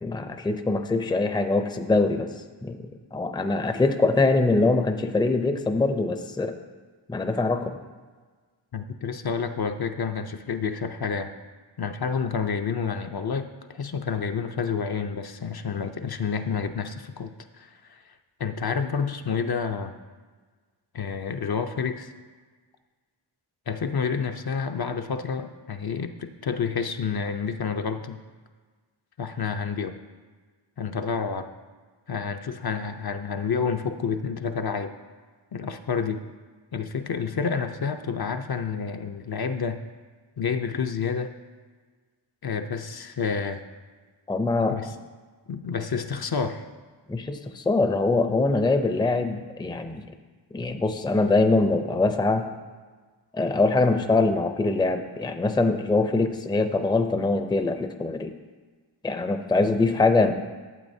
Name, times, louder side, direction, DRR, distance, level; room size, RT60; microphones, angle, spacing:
voice 1, 0.0-2.3 2.6-2.8 3.1-6.5 7.1-7.8 44.3-44.8 47.1-50.0 50.5-52.5 53.3-58.3 59.0-60.3, left 3 dB, 10° left, 7 dB, 0.5 m, -23 dB
voice 2, 8.7-11.3 11.8-18.1 18.4-20.0 20.9-22.1 23.7-28.2 29.2-29.9 30.8-31.5 32.1-34.9 35.5-36.2 36.7-39.8 40.4-41.3 42.4-43.6 44.7-44.9 45.5-46.6, left 6 dB, 55° left, 6 dB, 0.6 m, -29 dB
12.5 x 7.9 x 2.7 m, 1.4 s
wide cardioid pair, 75°, 45 cm